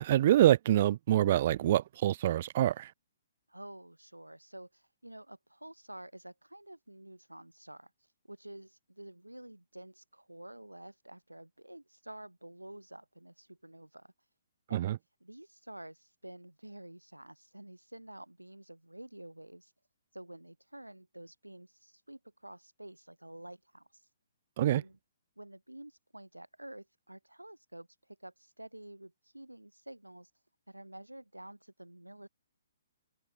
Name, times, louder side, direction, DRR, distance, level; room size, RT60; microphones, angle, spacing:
voice 1, 0.0-2.9 14.7-15.0 24.6-24.8, right 12 dB, 45° right, 0.6 m, -26 dB
voice 2, 3.5-7.9 8.3-14.1 14.7-14.9 15.2-19.7 20.1-24.0 24.7-25.0 25.4-30.3 30.7-32.3, right 1 dB, 90° right, 5.2 m, -50 dB
open air
figure-of-eight pair, 125°, 0 cm